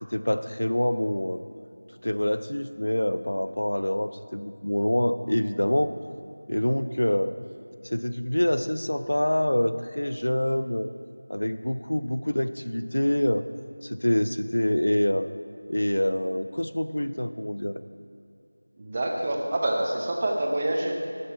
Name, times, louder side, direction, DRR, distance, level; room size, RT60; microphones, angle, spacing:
voice 1, 0.1-1.4 2.0-5.9 6.5-7.4 7.8-10.9 11.3-13.5 13.8-15.3 15.7-17.8, left 1 dB, 90° left, 12 dB, 0.5 m, -26 dB
voice 2, 18.8-20.9, right 1 dB, 15° right, 1 dB, 0.5 m, -26 dB
11.5 x 6.1 x 5.5 m, 2.5 s
figure-of-eight pair, 180°, 0 cm